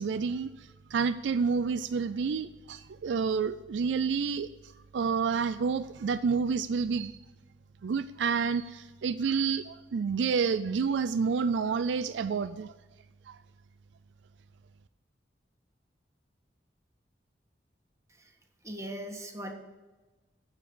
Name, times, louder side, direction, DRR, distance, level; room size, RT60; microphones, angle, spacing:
voice 1, 0.0-4.5 4.9-7.2 7.8-12.7 13.3-13.4, right 5 dB, 80° right, 14 dB, 0.4 m, -29 dB
voice 2, 18.6-19.5, right 1 dB, 20° right, 3 dB, 1.5 m, -39 dB
9.4 x 7.2 x 8.6 m, 1.2 s
head